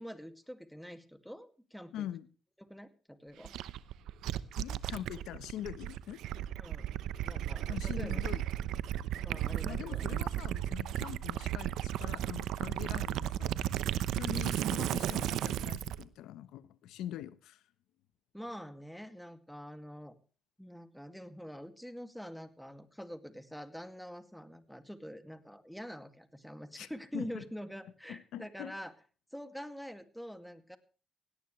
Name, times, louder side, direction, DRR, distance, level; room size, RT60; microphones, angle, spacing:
voice 1, 0.0-2.1 2.6-3.6 6.6-6.9 7.2-8.2 9.2-10.3 18.3-20.2 20.6-28.9 29.3-30.8, equal, ahead, 2.2 m, -46 dB
voice 2, 1.9-2.3 4.6-6.2 7.7-8.4 9.6-13.8 14.1-17.6 26.8-26.9 27.1-27.4 28.1-28.8, left 12 dB, 90° left, 1.0 m, -43 dB
Gurgling / Liquid, 3.4-16.0, right 12 dB, 85° right, 0.9 m, -34 dB
18.0 x 17.0 x 3.2 m
cardioid pair, 90°, 0 cm